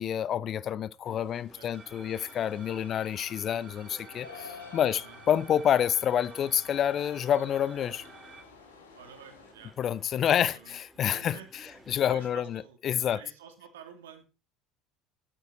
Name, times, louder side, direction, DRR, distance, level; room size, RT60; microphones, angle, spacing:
voice 1, 0.0-8.0 9.8-11.4 11.9-13.2, left 9 dB, 45° left, 0.7 m, -28 dB
sound 1, 1.0-12.3, equal, ahead, 4.2 m, -57 dB
voice 2, 1.5-2.3 4.8-5.2 9.0-9.7 10.2-10.8 11.1-12.8 13.1-14.2, right 8 dB, 80° right, 2.7 m, -51 dB
sound 2, 1.7-8.4, right 4 dB, 30° right, 2.7 m, -51 dB
sound 3, 2.1-9.5, left 6 dB, 90° left, 1.7 m, -51 dB
12.5 x 9.2 x 4.6 m
hypercardioid pair, 70°, 0 cm